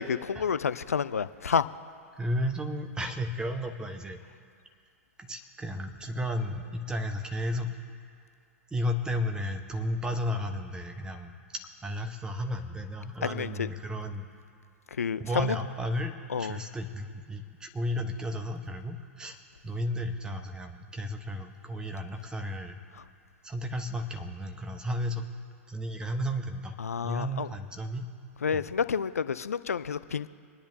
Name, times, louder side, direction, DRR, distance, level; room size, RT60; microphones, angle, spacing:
voice 1, 0.0-1.7 13.2-13.7 15.0-15.6 16.3-16.6 26.8-27.5 28.4-30.3, left 6 dB, 80° left, 14 dB, 0.5 m, -29 dB
voice 2, 2.2-4.2 5.2-7.8 8.7-11.3 11.8-14.2 15.2-16.1 16.4-19.4 19.6-22.8 23.4-25.3 25.7-26.7 27.0-28.1 28.5-28.6, equal, 10° right, 6 dB, 1.1 m, -33 dB
26.0 x 10.0 x 2.7 m, 2.3 s
figure-of-eight pair, 105°, 8 cm